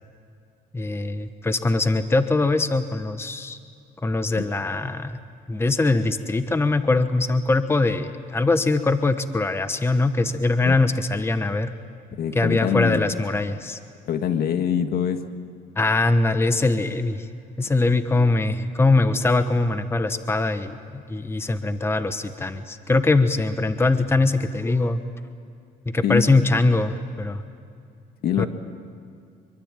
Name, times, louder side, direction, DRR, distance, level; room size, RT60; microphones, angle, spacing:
voice 1, 0.7-3.6 4.0-5.2 5.5-11.7 12.3-13.8 15.8-17.3 17.6-25.0 25.9-27.4 28.4-28.5, left 2 dB, 15° left, 10 dB, 1.1 m, -22 dB
voice 2, 12.2-13.1 14.1-15.2 26.0-26.2 28.2-28.5, left 9 dB, 65° left, 8 dB, 1.8 m, -24 dB
25.5 x 23.5 x 9.0 m, 2.4 s
cardioid pair, 110°, 17 cm